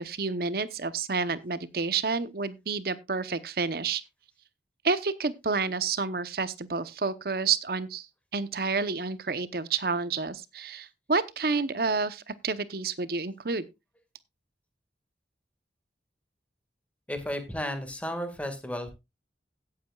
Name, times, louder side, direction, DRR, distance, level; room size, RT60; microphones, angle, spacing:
voice 1, 0.0-4.0 4.8-8.1 8.3-13.7, right 4 dB, 55° right, 0.8 m, -29 dB
voice 2, 17.1-18.9, equal, 10° left, 1.8 m, -33 dB
17.0 x 8.6 x 2.3 m
head